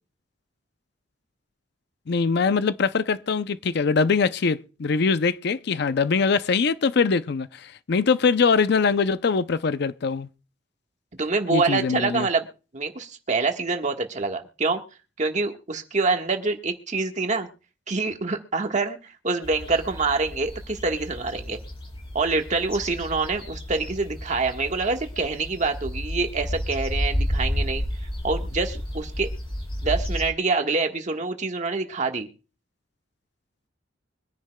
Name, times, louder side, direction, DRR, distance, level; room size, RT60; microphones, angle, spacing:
voice 1, 2.1-10.3 11.5-12.3, left 5 dB, 60° left, 0.5 m, -22 dB
voice 2, 11.2-12.5 12.7-14.8 15.2-17.5 17.9-21.6 22.1-27.8 28.2-29.3 29.8-32.3, right 3 dB, 40° right, 1.4 m, -26 dB
sound 1, 19.4-30.3, equal, 30° left, 4.3 m, -31 dB
24.5 x 10.0 x 2.2 m
head